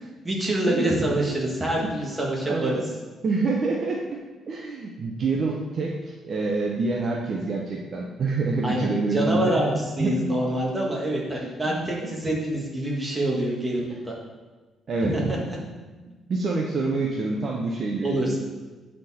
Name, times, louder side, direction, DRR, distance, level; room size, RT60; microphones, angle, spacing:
voice 1, 0.2-2.7 8.6-9.7 10.0-14.1 15.0-15.4 18.0-18.4, right 1 dB, 15° right, -3 dB, 1.6 m, -26 dB
voice 2, 2.4-2.8 3.2-4.0 4.5-6.0 6.2-10.3 11.4-12.1 14.9-15.1 16.3-18.4, right 3 dB, 45° right, -1 dB, 0.7 m, -27 dB
7.9 x 4.4 x 4.2 m, 1.3 s
cardioid pair, 130°, 0 cm